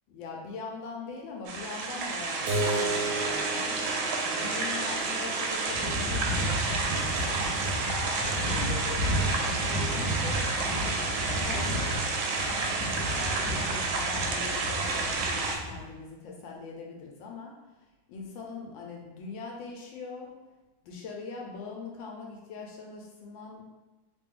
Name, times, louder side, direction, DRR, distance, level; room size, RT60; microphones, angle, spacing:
voice 1, 0.1-3.8 4.2-11.0 11.4-12.0 12.5-17.6 18.1-20.3 20.8-23.6, left 4 dB, 80° left, 0 dB, 1.4 m, -41 dB
sound 1, 1.5-15.6, right 3 dB, 85° right, 1.4 m, -30 dB
Keyboard (musical), 2.5-7.6, right 2 dB, 70° right, 1.0 m, -35 dB
sound 2, 5.7-15.9, equal, 10° right, 0.5 m, -33 dB
3.4 x 2.5 x 3.6 m, 1.1 s
omnidirectional pair, 2.2 m